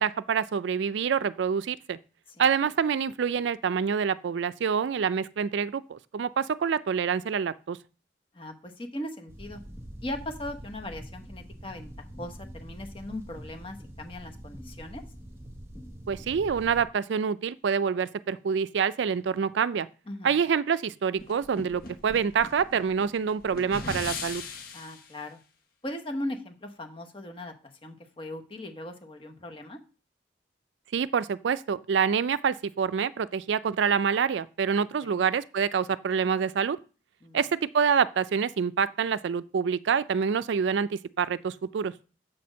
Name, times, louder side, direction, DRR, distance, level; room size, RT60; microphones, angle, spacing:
voice 1, 0.0-2.0 2.4-7.8 16.1-19.9 20.2-24.4 30.9-36.8 37.3-41.9, right 6 dB, 75° right, 0.4 m, -26 dB
voice 2, 8.3-9.6 10.0-15.0 20.1-20.4 24.7-25.4 25.8-27.5 27.8-29.8 35.0-35.2 37.2-37.4, left 1 dB, 30° left, 1.0 m, -39 dB
sound 1, 9.3-16.8, equal, 15° right, 1.1 m, -44 dB
sound 2, 21.2-25.1, left 4 dB, 50° left, 1.1 m, -39 dB
7.6 x 4.3 x 6.2 m
head